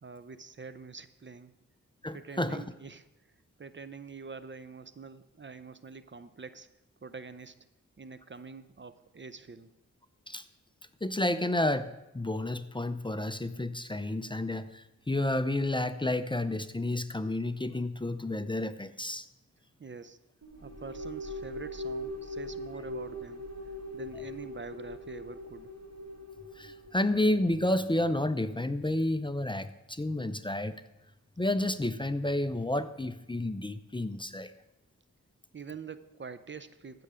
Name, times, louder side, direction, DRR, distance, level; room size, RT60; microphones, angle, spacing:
voice 1, 0.0-1.5 2.1-3.1 3.6-6.7 7.0-7.7 8.0-9.7 19.8-20.2 20.6-25.7 35.5-37.0, right 5 dB, 40° right, 13 dB, 0.6 m, -45 dB
voice 2, 2.0-2.6 10.3-10.4 11.0-19.2 26.6-30.7 31.4-34.5, left 1 dB, 15° left, 11 dB, 0.6 m, -30 dB
sound 1, 20.4-28.0, left 1 dB, 55° right, 1.8 m, -41 dB
15.5 x 6.8 x 4.9 m, 0.95 s
cardioid pair, 55°, 31 cm